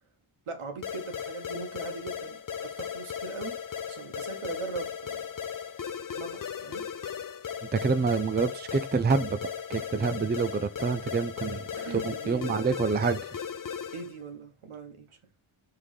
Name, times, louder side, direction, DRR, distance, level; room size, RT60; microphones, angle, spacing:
voice 1, 0.5-3.6 3.9-5.2 6.1-6.8 11.8-12.8 13.9-15.2, right 4 dB, 80° right, 1.6 m, -40 dB
sound 1, 0.8-14.2, left 7 dB, 40° left, 0.5 m, -37 dB
voice 2, 7.7-9.4 9.7-11.6 11.9-13.3, right 5 dB, 20° right, 0.4 m, -27 dB
6.2 x 3.7 x 4.9 m
wide cardioid pair, 145°, 49 cm